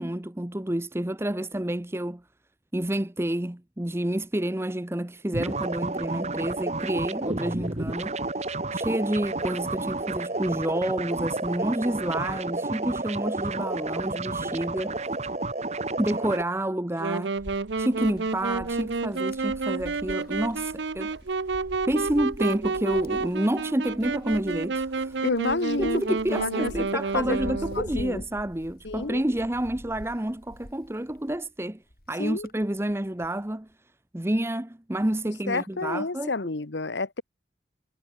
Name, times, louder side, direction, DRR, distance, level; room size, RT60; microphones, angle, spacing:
voice 1, 0.0-2.2 2.7-8.2 8.7-14.9 16.0-17.3 17.8-21.1 21.5-25.2 25.8-31.8 32.1-33.7 34.1-36.3, right 1 dB, 15° right, 0.8 m, -29 dB
sound 1, 5.3-16.4, right 2 dB, 40° right, 1.7 m, -31 dB
Wind instrument woodwind instrument, 17.0-27.9, right 4 dB, 90° right, 0.8 m, -30 dB
Wind, 17.4-31.5 31.9-33.4, equal, 55° left, 5.4 m, -45 dB
voice 2, 25.2-26.0 26.3-28.2 28.8-29.2 32.2-32.5 35.5-37.2, left 3 dB, 85° left, 1.3 m, -29 dB
head